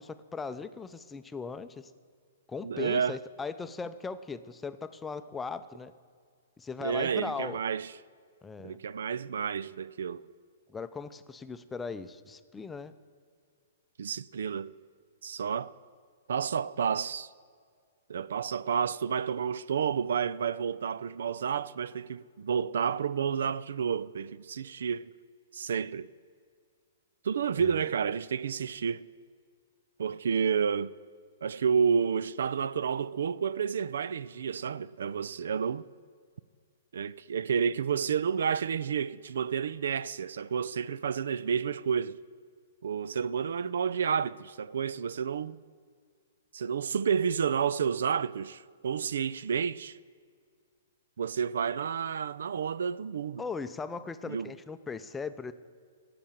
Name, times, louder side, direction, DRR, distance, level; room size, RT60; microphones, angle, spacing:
voice 1, 0.0-1.9 2.5-5.9 6.6-7.6 8.4-8.8 10.7-12.9 27.6-27.9 53.4-55.5, left 5 dB, 10° left, 0.5 m, -38 dB
voice 2, 2.6-3.2 6.8-7.9 8.6-10.3 14.0-14.7 15.2-15.7 16.3-17.3 18.1-25.1 25.5-26.1 27.2-29.1 30.0-30.9 31.4-35.9 36.9-42.2 42.8-45.6 46.5-50.0 51.2-53.4 54.3-54.5, right 7 dB, 75° right, 0.3 m, -30 dB
17.0 x 6.8 x 7.2 m
hypercardioid pair, 130°, 0 cm